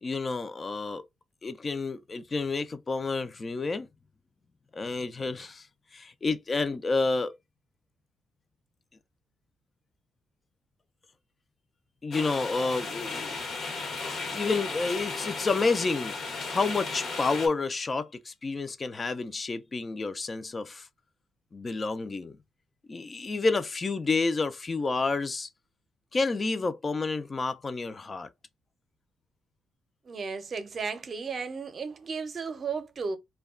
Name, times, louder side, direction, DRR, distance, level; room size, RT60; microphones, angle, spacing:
voice 1, 0.0-1.0 1.4-3.9 4.7-5.7 5.9-7.4 12.0-13.4 14.0-16.2 16.5-20.9 21.5-22.4 22.9-25.5 26.1-28.3, left 3 dB, 30° left, 0.4 m, -29 dB
sound 1, 12.1-17.5, left 4 dB, 60° left, 1.0 m, -35 dB
voice 2, 30.1-33.2, right 5 dB, 45° right, 0.6 m, -34 dB
2.3 x 2.2 x 3.5 m
cardioid pair, 90°, 0 cm